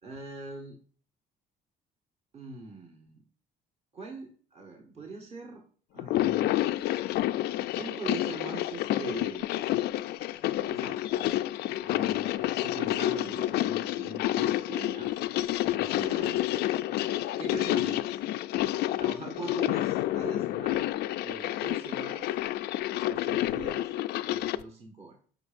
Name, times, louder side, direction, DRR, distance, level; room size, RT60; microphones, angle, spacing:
voice 1, 0.0-0.8 2.3-3.2 3.9-5.6 5.9-6.6 7.7-9.5 10.5-11.4 11.8-15.1 15.7-16.4 17.4-18.2 19.0-20.9 21.2-22.4 23.1-23.9 24.3-25.2, right 3 dB, 35° right, 1 dB, 1.4 m, -42 dB
sound 1, 6.0-24.6, left 14 dB, 75° left, 0.4 m, -29 dB
14.5 x 5.2 x 2.5 m, 0.43 s
cardioid pair, 110°, 17 cm